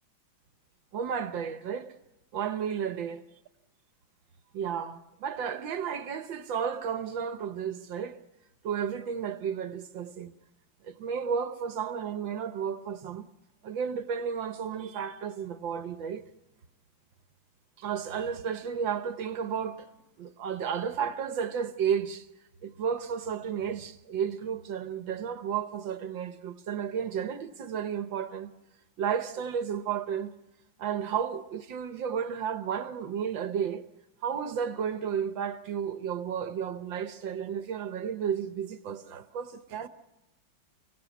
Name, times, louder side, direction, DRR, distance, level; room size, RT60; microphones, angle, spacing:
voice 1, 0.9-1.9 2.3-3.2 4.5-8.2 8.6-10.3 10.8-13.3 13.6-16.3 17.8-19.9 20.2-22.3 22.6-28.5 29.0-30.3 30.8-33.9 34.2-39.9, right 7 dB, 65° right, 1.7 m, -32 dB
29.5 x 17.5 x 8.3 m
omnidirectional pair, 2.3 m